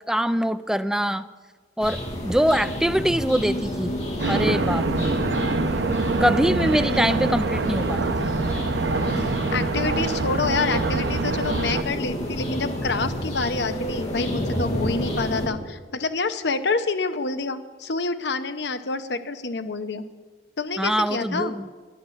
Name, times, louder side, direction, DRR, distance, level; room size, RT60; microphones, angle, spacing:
voice 1, 0.1-1.3 1.8-2.0 2.2-3.9 4.3-5.1 6.2-8.3 20.8-21.7, equal, 5° right, 11 dB, 0.4 m, -23 dB
sound 1, 1.8-15.5, equal, 40° left, 2.2 m, -30 dB
sound 2, 4.2-11.8, right 3 dB, 85° right, 0.7 m, -25 dB
voice 2, 9.5-20.0 20.6-21.5, left 4 dB, 70° left, 10 dB, 0.8 m, -27 dB
10.5 x 10.5 x 7.3 m, 1.4 s
head